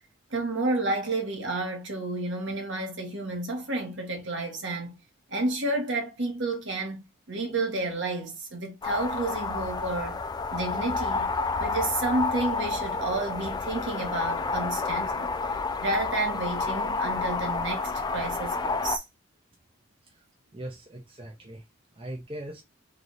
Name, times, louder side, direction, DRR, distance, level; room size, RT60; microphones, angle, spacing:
voice 1, 0.3-4.9 5.3-10.2 10.5-11.3 11.6-15.3 15.8-19.0, right 2 dB, 60° right, 1.3 m, -30 dB
sound 1, 8.8-19.0, left 4 dB, 20° left, 0.3 m, -30 dB
voice 2, 20.5-21.6 22.0-22.6, right 1 dB, 25° right, 0.7 m, -40 dB
3.4 x 3.2 x 4.0 m
head